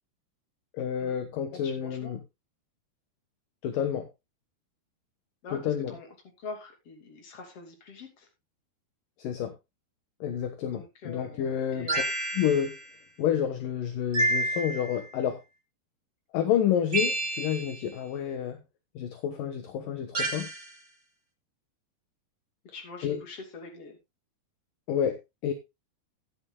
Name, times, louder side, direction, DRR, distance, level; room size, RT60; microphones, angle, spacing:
voice 1, 0.7-2.2 3.6-4.1 5.5-6.0 9.2-9.5 10.2-11.9 12.4-12.8 13.2-15.4 16.3-18.6 19.0-20.5 23.0-23.2 24.9-25.2 25.4-25.5, left 9 dB, 65° left, 8 dB, 2.4 m, -29 dB
voice 2, 1.6-2.2 5.4-8.3 10.7-12.1 22.7-24.0, left 4 dB, 40° left, 3 dB, 3.4 m, -44 dB
sound 1, 11.9-12.8 14.1-15.1 16.9-17.8 20.1-20.7, right 1 dB, 30° right, 1.9 m, -29 dB
15.5 x 10.5 x 2.2 m, 0.23 s
omnidirectional pair, 4.8 m